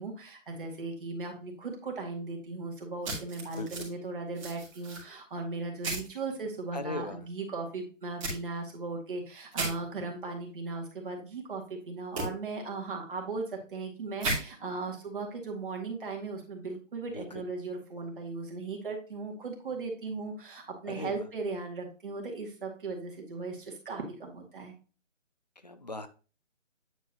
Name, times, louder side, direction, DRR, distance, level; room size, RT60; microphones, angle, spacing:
voice 1, 0.0-24.7, right 3 dB, 40° right, 0 dB, 2.3 m, -37 dB
sound 1, 3.0-3.9 4.3-5.0 5.8-6.1 8.2-8.4 9.5-9.7 12.1-12.3 14.2-14.4, right 2 dB, 25° right, 2.5 m, -33 dB
voice 2, 3.5-3.9 6.7-7.3 17.1-17.4 20.8-21.2 25.6-26.1, left 2 dB, 35° left, 11 dB, 0.5 m, -39 dB
9.2 x 4.6 x 2.9 m, 0.36 s
figure-of-eight pair, 160°, 38 cm